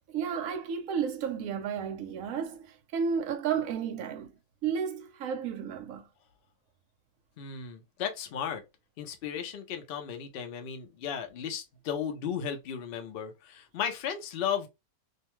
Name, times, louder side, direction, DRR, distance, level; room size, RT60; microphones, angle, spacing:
voice 1, 0.1-4.3 4.6-6.1, right 7 dB, 70° right, 0.9 m, -32 dB
voice 2, 7.4-8.6 9.0-14.7, left 8 dB, 60° left, 0.6 m, -35 dB
2.7 x 2.2 x 2.9 m
omnidirectional pair, 1.6 m